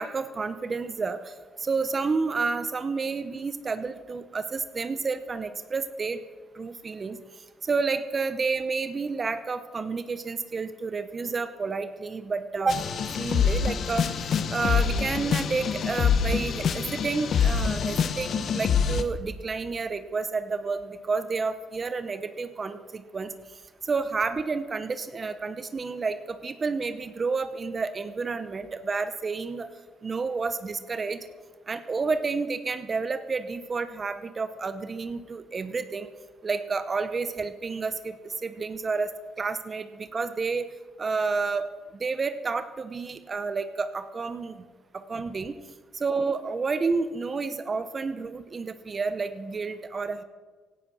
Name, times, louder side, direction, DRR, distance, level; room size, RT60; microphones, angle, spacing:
voice 1, 0.0-1.3 1.6-6.2 6.5-7.2 7.6-12.9 13.2-14.1 14.5-23.3 23.8-29.7 30.0-31.3 31.7-36.1 36.4-39.1 39.4-40.7 41.0-41.7 42.0-44.5 44.9-45.6 45.9-50.2, right 4 dB, 35° right, 12 dB, 0.9 m, -30 dB
sound 1, 12.7-19.0, left 6 dB, 60° left, 1.1 m, -25 dB
16.5 x 11.5 x 6.4 m, 1.4 s
cardioid pair, 90°, 0 cm